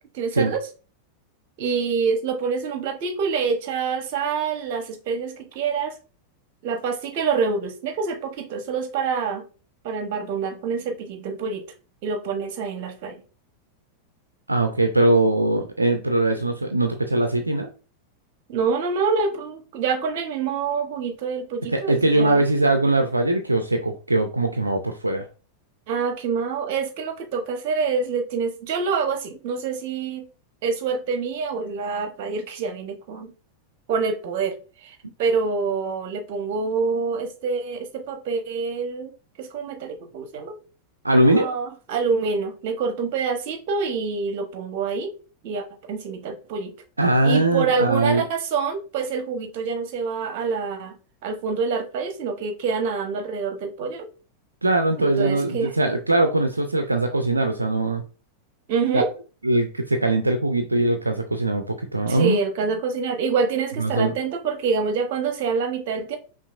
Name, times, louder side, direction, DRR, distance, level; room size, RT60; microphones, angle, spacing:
voice 1, 0.1-0.6 1.6-5.9 6.6-9.4 9.8-11.6 12.0-13.2 18.5-22.5 25.9-30.3 30.6-33.3 33.9-34.5 34.8-39.1 39.4-40.6 41.3-45.1 45.4-46.7 47.2-51.0 51.2-54.1 55.0-55.7 58.7-59.1 62.1-66.2, right 5 dB, 50° right, 7 dB, 0.8 m, -26 dB
voice 2, 14.5-17.7 21.7-25.3 41.0-41.5 47.0-48.2 54.6-58.0 58.9-59.0 59.4-62.4 63.8-64.1, right 2 dB, 80° right, 6 dB, 0.4 m, -21 dB
5.7 x 2.4 x 2.4 m, 0.35 s
figure-of-eight pair, 90°, 0 cm